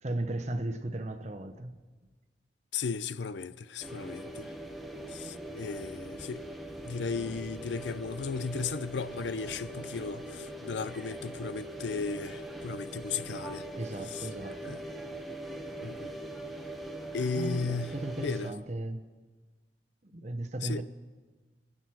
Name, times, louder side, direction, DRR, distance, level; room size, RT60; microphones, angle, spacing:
voice 1, 0.0-1.7 13.7-14.8 17.3-19.0 20.0-20.8, right 1 dB, 40° right, 0.9 m, -36 dB
voice 2, 2.7-4.5 5.1-6.5 6.9-13.7 14.1-14.3 14.6-14.8 15.8-16.1 17.1-18.5 20.6-20.8, left 4 dB, 80° left, 0.5 m, -35 dB
sound 1, 3.8-18.5, right 1 dB, ahead, 1.2 m, -41 dB
24.5 x 9.0 x 6.1 m
head